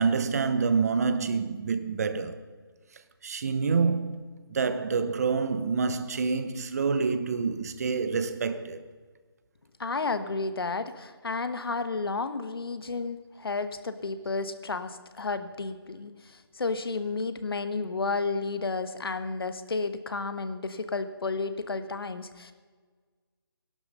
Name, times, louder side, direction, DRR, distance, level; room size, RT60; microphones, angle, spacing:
voice 1, 0.0-2.4 3.2-4.2 4.5-8.9, right 5 dB, 40° right, 0.9 m, -27 dB
voice 2, 9.8-22.5, left 3 dB, 70° left, 1.2 m, -32 dB
17.0 x 11.5 x 5.5 m
figure-of-eight pair, 160°, 13 cm